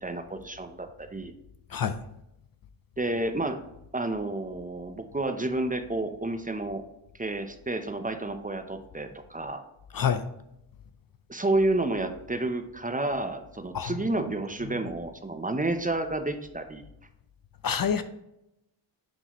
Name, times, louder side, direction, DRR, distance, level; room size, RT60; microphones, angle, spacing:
voice 1, 0.0-1.3 3.0-3.6 3.9-6.8 7.2-9.6 11.3-16.8, right 2 dB, 15° right, 0.7 m, -30 dB
voice 2, 17.6-18.0, left 7 dB, 45° left, 0.5 m, -26 dB
10.0 x 3.9 x 3.0 m
cardioid pair, 55°, 49 cm